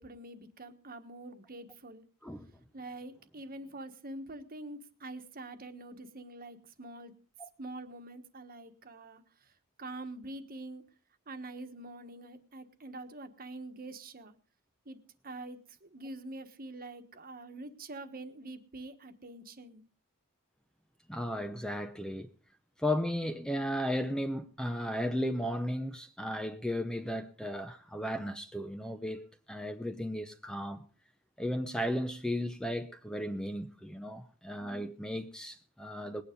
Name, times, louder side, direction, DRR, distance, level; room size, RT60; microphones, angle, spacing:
voice 1, 0.0-2.0 2.7-7.1 7.6-9.5 9.8-10.8 11.3-14.3 14.8-19.8, right 2 dB, 40° right, 1.4 m, -45 dB
voice 2, 21.1-22.3 22.8-30.9 31.4-36.2, equal, 5° left, 0.7 m, -35 dB
19.5 x 9.4 x 5.2 m
head